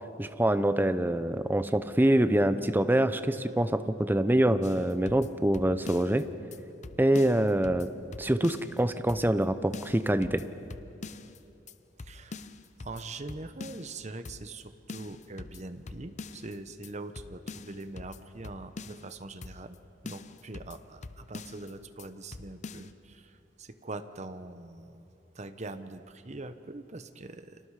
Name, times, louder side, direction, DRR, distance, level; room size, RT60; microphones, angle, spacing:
voice 1, 0.2-6.3 7.0-7.9 8.2-10.4, right 1 dB, 10° right, 11 dB, 0.7 m, -25 dB
sound 1, 4.6-6.2 6.5-6.6 6.8-8.8 9.1-9.5 9.7-11.4 11.7-11.8 12.0-14.0 14.3-14.6 14.9-16.6 16.8-16.9 17.2-19.1 19.4-19.8 20.1-21.7 22.0-22.1 22.3-22.9, left 3 dB, 40° left, 0.7 m, -44 dB
voice 2, 12.0-12.4 12.8-19.8 20.0-25.1 25.3-27.6, right 2 dB, 40° right, 10 dB, 1.0 m, -43 dB
29.5 x 24.5 x 4.9 m, 2.8 s
head